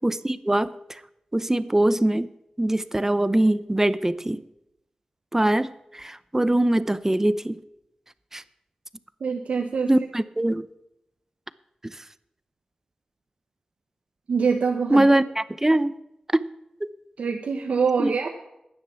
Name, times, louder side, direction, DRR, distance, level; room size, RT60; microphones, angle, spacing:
voice 1, 0.0-1.0 1.3-2.3 2.6-4.4 5.3-7.6 8.3-8.4 9.9-10.7 11.8-12.0 14.9-15.9 16.3-16.5 16.8-16.9 18.0-18.3, right 1 dB, 20° right, 15 dB, 0.7 m, -22 dB
voice 2, 9.2-9.9 14.3-15.1 17.2-18.3, right 5 dB, 85° right, 3 dB, 1.1 m, -24 dB
11.0 x 9.8 x 7.0 m, 0.86 s
cardioid pair, 55°, 2 cm